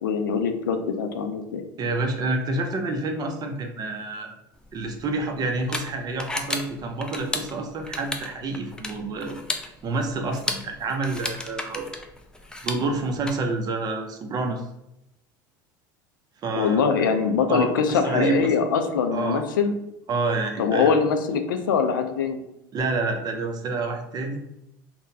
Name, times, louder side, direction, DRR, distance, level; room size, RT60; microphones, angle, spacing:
voice 1, 0.0-1.6 16.5-19.7 20.6-22.4, left 6 dB, 85° left, 7 dB, 0.4 m, -23 dB
voice 2, 1.8-4.3 4.7-11.9 12.6-14.6 16.4-16.8 17.5-18.5 19.1-19.4 20.1-20.9 22.7-24.4, right 3 dB, 35° right, 5 dB, 0.6 m, -28 dB
sound 1, 4.6-13.3, left 2 dB, 10° left, 0.5 m, -34 dB
3.7 x 2.1 x 2.7 m, 0.84 s
hypercardioid pair, 80°, 11 cm